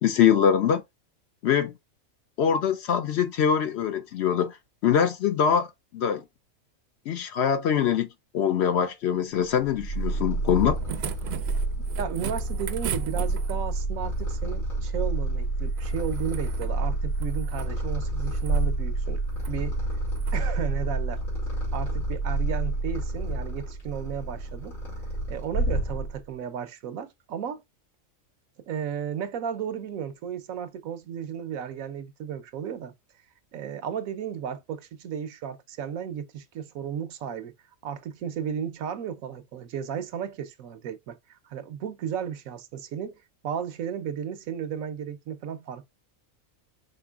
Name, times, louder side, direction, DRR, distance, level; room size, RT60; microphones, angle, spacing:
voice 1, 0.0-0.8 1.4-1.7 2.4-4.6 4.8-6.2 7.1-8.1 8.3-10.8, left 8 dB, 65° left, 0.7 m, -23 dB
Purr, 9.5-26.3, right 2 dB, 85° left, 3.3 m, -29 dB
sound 1, 10.5-13.8 15.7-16.7 17.1-17.7 18.2-18.7 19.3-19.6 20.1-20.4 21.7-21.8, right 9 dB, 65° right, 0.7 m, -38 dB
voice 2, 12.0-19.2 19.5-19.8 20.3-21.2 21.7-24.8 25.3-27.6 28.6-32.9 33.5-37.5 37.8-45.9, right 8 dB, 90° right, 1.1 m, -34 dB
5.2 x 3.9 x 2.3 m
omnidirectional pair, 1.4 m